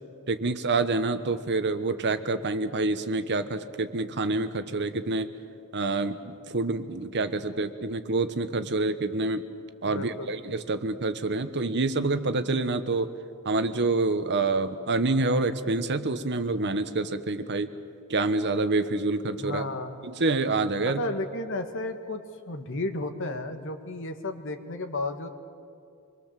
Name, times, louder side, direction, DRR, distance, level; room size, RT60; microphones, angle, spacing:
voice 1, 0.3-5.3 5.7-6.2 6.5-9.4 9.8-13.1 13.4-17.7 18.1-19.6 20.0-21.0, right 3 dB, 50° right, 10 dB, 1.1 m, -27 dB
voice 2, 9.9-10.3 19.4-20.0 20.8-25.3, left 2 dB, 60° left, 7 dB, 1.7 m, -33 dB
26.0 x 22.0 x 7.5 m, 2.3 s
head